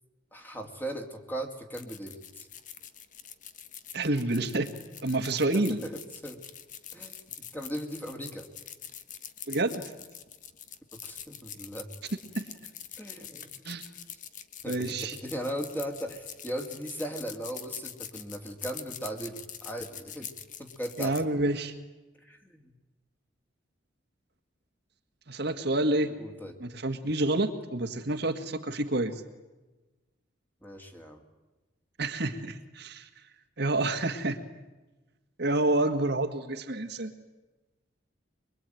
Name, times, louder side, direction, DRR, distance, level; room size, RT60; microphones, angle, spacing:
voice 1, 0.3-2.5 5.5-6.4 6.9-7.2 7.5-8.5 11.0-11.9 13.0-13.5 14.6-20.3 20.6-21.2 22.2-22.7 26.2-26.5 30.6-31.2, right 1 dB, 10° left, 3 dB, 2.6 m, -38 dB
sound 1, 1.7-21.2, left 9 dB, 40° left, 1.3 m, -44 dB
voice 2, 3.9-4.7 5.0-5.8 9.5-9.9 12.3-12.5 13.6-13.8 14.7-15.2 21.0-21.7 25.3-26.1 26.6-29.2 32.0-33.1 33.6-34.4 35.4-37.1, right 2 dB, 55° right, 5 dB, 1.8 m, -28 dB
23.5 x 23.5 x 9.3 m, 1.1 s
head